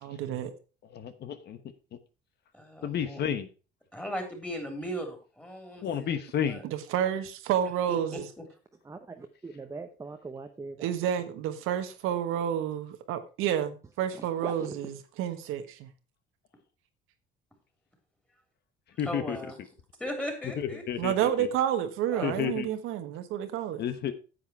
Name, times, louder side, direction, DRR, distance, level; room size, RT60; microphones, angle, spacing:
voice 1, 0.0-0.5 6.6-8.3 10.8-15.9 21.0-23.8, right 10 dB, 80° right, 1.4 m, -30 dB
voice 2, 0.9-1.6 2.8-3.5 5.8-6.6 19.0-19.4 20.6-21.5 22.2-22.7 23.8-24.1, left 8 dB, 50° left, 1.1 m, -31 dB
voice 3, 2.5-3.2 3.9-6.6 7.9-8.2 19.0-19.6 20.0-20.8 22.1-22.5, equal, 5° left, 3.5 m, -37 dB
voice 4, 8.8-11.0 14.2-14.9, right 3 dB, 15° right, 0.8 m, -41 dB
9.7 x 7.9 x 4.6 m
cardioid pair, 125°, 21 cm